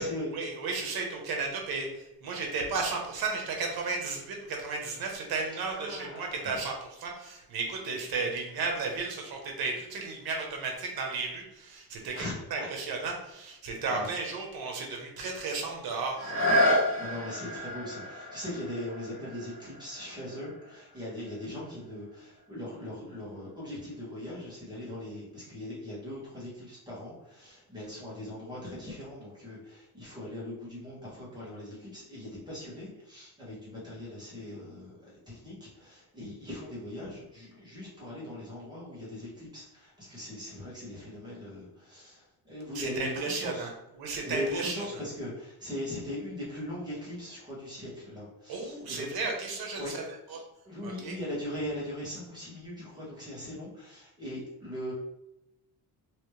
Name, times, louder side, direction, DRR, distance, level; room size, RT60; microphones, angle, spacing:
voice 1, 0.3-12.2 12.5-16.7 42.7-43.7 44.0-44.8 48.5-50.0 50.3-50.4 50.8-51.2, right 4 dB, 70° right, 1 dB, 1.0 m, -34 dB
voice 2, 5.7-6.6 12.1-12.7 13.9-14.1 17.0-43.7 44.2-49.1 49.7-49.9 50.3-54.9, left 1 dB, 10° right, -7 dB, 1.5 m, -40 dB
sound 1, 16.1-21.8 22.4-22.5, left 1 dB, 65° left, 1.2 m, -31 dB
3.2 x 3.2 x 3.1 m, 0.87 s
cardioid pair, 145°, 38 cm